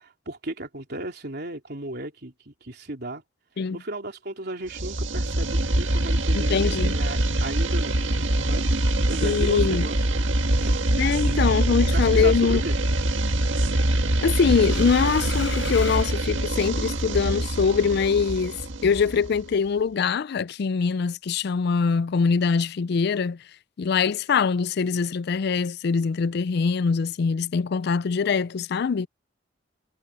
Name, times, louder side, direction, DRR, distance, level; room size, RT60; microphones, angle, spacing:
voice 1, 0.0-3.2 3.7-8.6 9.1-10.2 10.5-10.8 11.2-12.7, right 2 dB, 60° right, 3.5 m, -35 dB
sound 1, 4.7-19.5, right 1 dB, 85° right, 1.8 m, -24 dB
voice 2, 6.3-7.0 9.2-9.8 11.0-12.6 14.2-23.4 23.8-29.1, left 5 dB, 60° left, 0.4 m, -23 dB
sound 2, 12.9-16.9, left 6 dB, 80° left, 6.9 m, -39 dB
head